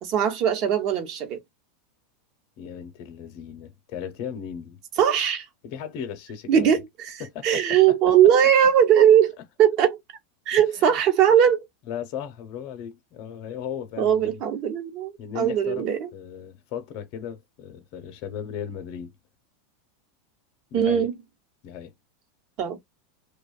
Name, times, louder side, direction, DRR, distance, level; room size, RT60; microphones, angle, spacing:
voice 1, 0.0-1.4 5.0-5.5 6.5-7.2 7.4-10.0 10.5-11.6 14.0-16.1 20.7-21.1 22.6-22.8, right 9 dB, 50° right, 0.9 m, -20 dB
voice 2, 2.6-4.8 5.6-6.8 7.2-8.1 10.6-11.0 11.9-14.4 15.2-19.1 20.7-21.1 21.6-21.9, left 8 dB, 50° left, 0.7 m, -36 dB
2.5 x 2.2 x 2.2 m
hypercardioid pair, 110°, 0 cm